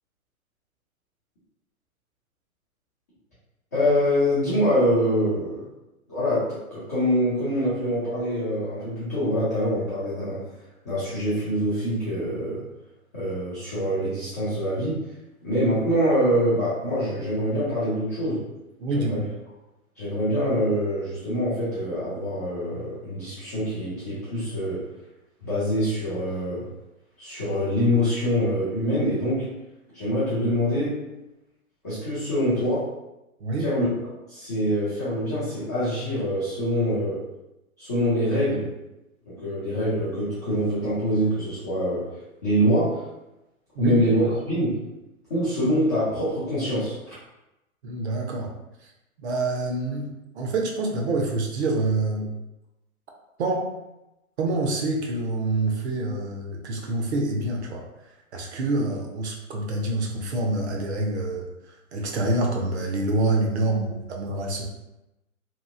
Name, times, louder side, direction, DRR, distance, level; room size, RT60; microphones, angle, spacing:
voice 1, 3.7-5.6 6.1-10.4 10.8-12.6 13.1-15.0 15.4-18.4 18.9-19.2 20.0-24.8 25.4-26.6 27.2-29.4 29.9-31.0 31.8-32.8 33.6-33.9 34.3-37.2 37.8-38.7 39.3-42.0 42.4-43.0 43.8-44.7 45.3-47.2, equal, 15° left, -13 dB, 0.3 m, -25 dB
voice 2, 18.8-19.2 33.4-33.7 43.7-44.0 47.8-48.5 48.8-48.9 49.2-50.1 50.3-52.3 53.4-53.7 54.4-57.8 58.3-64.6, right 2 dB, 50° right, 0 dB, 0.7 m, -26 dB
2.9 x 2.4 x 2.4 m, 0.94 s
hypercardioid pair, 130°, 42 cm